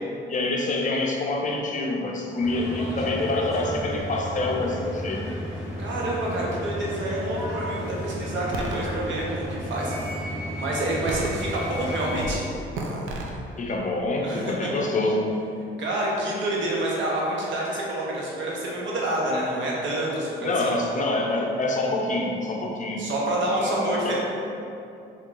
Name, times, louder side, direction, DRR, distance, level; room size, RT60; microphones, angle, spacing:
voice 1, 0.3-5.3 13.6-15.3 20.4-23.1 23.4-24.2, left 2 dB, 40° left, 0 dB, 0.5 m, -26 dB
sound 1, 2.4-12.3, equal, 15° right, 1.2 m, -33 dB
voice 2, 5.8-9.9 10.6-12.4 14.2-14.7 15.8-20.9 23.0-24.2, right 1 dB, 70° right, -4 dB, 0.9 m, -28 dB
sound 2, 8.5-8.8 9.5-10.2 11.1-11.8 12.2-12.4 12.7-13.3, right 2 dB, 85° right, 0.5 m, -33 dB
4.5 x 2.9 x 2.5 m, 2.7 s
cardioid pair, 90°, 20 cm